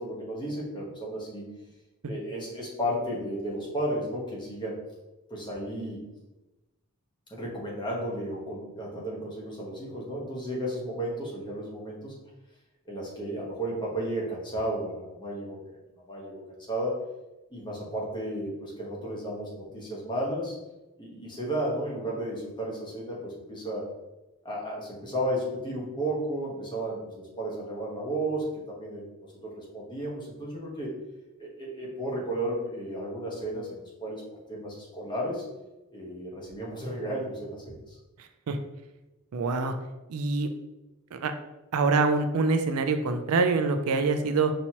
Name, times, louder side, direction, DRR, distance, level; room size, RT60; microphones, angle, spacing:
voice 1, 0.0-1.4 2.1-4.8 5.3-6.0 7.3-12.1 12.9-15.6 16.1-17.0 17.5-20.5 21.0-23.8 24.4-29.1 29.4-31.0 31.4-34.2 34.5-35.4 35.9-38.0, right 1 dB, 20° left, -4 dB, 1.1 m, -33 dB
voice 2, 38.2-38.6 39.3-39.7 40.1-40.5 41.1-41.3 41.7-44.5, right 4 dB, 70° right, 8 dB, 0.4 m, -25 dB
5.5 x 2.9 x 2.9 m, 1.0 s
head